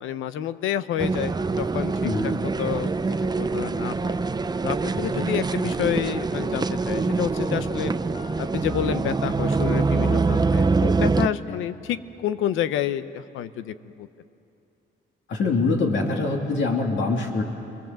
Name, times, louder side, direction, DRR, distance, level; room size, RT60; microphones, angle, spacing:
voice 1, 0.0-2.1 2.4-2.9 3.4-4.2 4.6-7.9 8.4-14.1, left 10 dB, 85° left, 13 dB, 0.9 m, -29 dB
sound 1, 1.0-11.3, right 4 dB, 20° right, 0.7 m, -24 dB
voice 2, 2.0-2.4 4.9-5.3 11.5-11.6 15.3-17.4, left 3 dB, 70° left, 0 dB, 3.0 m, -25 dB
Piano, 7.4-12.3, left 3 dB, 30° left, 3.5 m, -44 dB
29.0 x 20.5 x 7.6 m, 2.7 s
cardioid pair, 90°, 20 cm